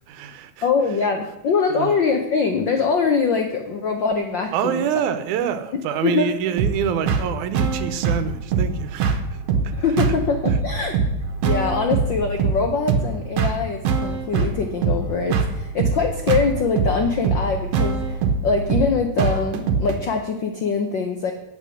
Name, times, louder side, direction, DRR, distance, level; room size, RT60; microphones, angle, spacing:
voice 1, 0.1-0.7 1.7-2.0 4.5-10.1 10.5-10.6, right 9 dB, 85° right, 12 dB, 2.3 m, -27 dB
voice 2, 0.6-4.9 6.0-6.3 9.7-11.0 11.4-21.3, left 5 dB, 80° left, 4 dB, 1.0 m, -23 dB
sound 1, 6.6-20.0, right 5 dB, 65° right, 1.9 m, -23 dB
9.3 x 8.1 x 6.3 m, 0.98 s
omnidirectional pair, 3.4 m